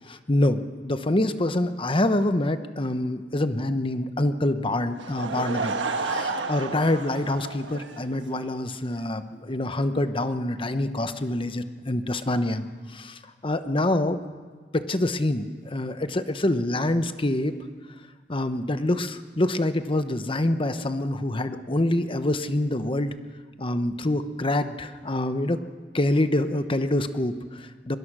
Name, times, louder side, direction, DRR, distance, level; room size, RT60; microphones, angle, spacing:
voice 1, 0.1-14.2 14.7-17.6 18.3-23.1 23.6-25.6 25.9-28.0, left 1 dB, 30° left, 10 dB, 1.0 m, -26 dB
Laughter / Crowd, 4.9-8.5, right 3 dB, 90° right, 1.4 m, -31 dB
23.0 x 21.5 x 6.2 m, 1.5 s
head